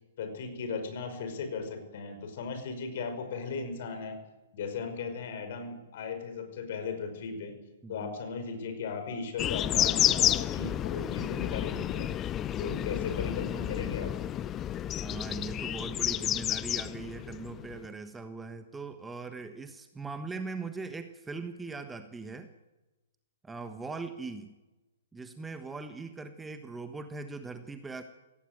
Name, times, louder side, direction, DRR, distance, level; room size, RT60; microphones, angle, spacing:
voice 1, 0.2-4.2 4.5-7.6 7.9-12.1 12.6-14.1, left 5 dB, 50° left, 7 dB, 5.4 m, -37 dB
voice 2, 7.8-8.1 15.0-22.5 23.4-24.5 25.1-28.0, right 4 dB, 10° right, 9 dB, 1.3 m, -40 dB
sound 1, 9.4-17.9, left 11 dB, 25° left, 0.6 m, -30 dB
17.5 x 16.5 x 9.2 m, 1.1 s
figure-of-eight pair, 120°, 0 cm